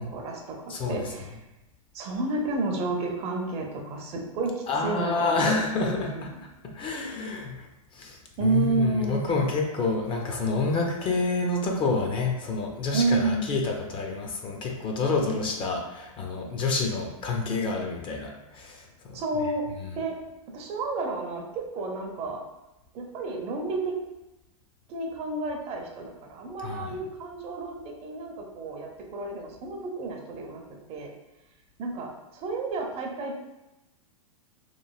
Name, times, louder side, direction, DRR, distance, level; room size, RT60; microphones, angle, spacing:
voice 1, 0.0-1.4 1.9-6.4 8.4-9.3 12.9-13.5 19.1-19.7 19.9-20.2 20.5-22.4 22.9-24.0 24.9-30.6 30.9-31.1 31.8-33.4, right 3 dB, 35° right, 1 dB, 0.5 m, -31 dB
voice 2, 0.7-1.0 4.7-6.3 6.7-7.6 8.0-19.2 26.6-26.9, left 3 dB, 30° left, 1 dB, 0.4 m, -28 dB
3.0 x 2.5 x 2.3 m, 0.98 s
hypercardioid pair, 110°, 18 cm